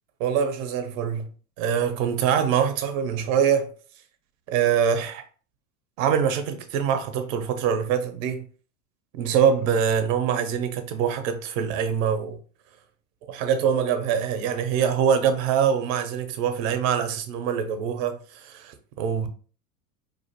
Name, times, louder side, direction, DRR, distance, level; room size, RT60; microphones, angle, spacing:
voice 1, 0.2-1.3 1.6-3.7 4.5-5.2 6.0-8.5 9.1-12.4 13.2-19.3, right 8 dB, 55° right, 0.7 m, -24 dB
2.5 x 2.4 x 2.6 m
hypercardioid pair, 95°, 47 cm